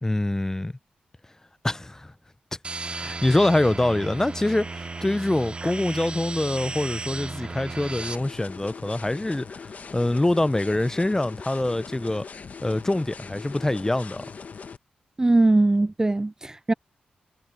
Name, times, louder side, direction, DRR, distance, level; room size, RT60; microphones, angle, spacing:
voice 1, 0.0-0.7 1.6-2.1 3.0-12.2 12.6-14.3, left 1 dB, 15° left, 0.7 m, -25 dB
sound 1, 2.6-8.2, right 3 dB, 35° right, 1.0 m, -35 dB
sound 2, 8.0-14.8, left 5 dB, 55° left, 1.6 m, -41 dB
voice 2, 15.2-16.7, right 2 dB, 20° right, 0.4 m, -20 dB
cardioid pair, 55°, 3 cm